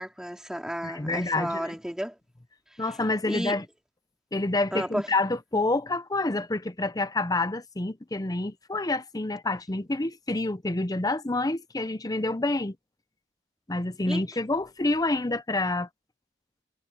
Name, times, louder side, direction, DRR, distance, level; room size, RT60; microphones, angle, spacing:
voice 1, 0.0-2.2 3.3-3.6 4.7-5.1 14.1-14.2, equal, 5° right, 2.7 m, -32 dB
voice 2, 0.8-1.7 2.8-3.6 4.3-12.8 13.7-15.9, left 2 dB, 20° left, 0.8 m, -28 dB
head